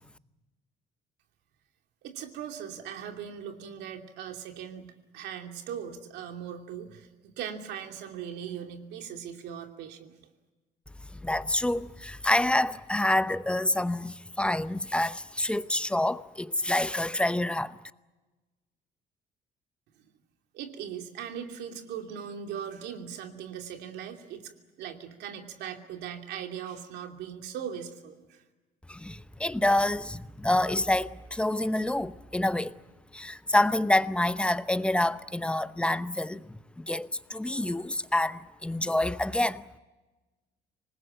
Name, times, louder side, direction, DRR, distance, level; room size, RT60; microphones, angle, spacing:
voice 1, 2.0-10.1 20.0-20.1 20.5-24.5 24.8-28.4, right 8 dB, 85° right, 2.8 m, -39 dB
voice 2, 11.1-17.8 28.9-32.7 33.1-39.6, left 1 dB, 5° left, 0.8 m, -27 dB
25.5 x 20.0 x 9.0 m
cardioid pair, 110°, 17 cm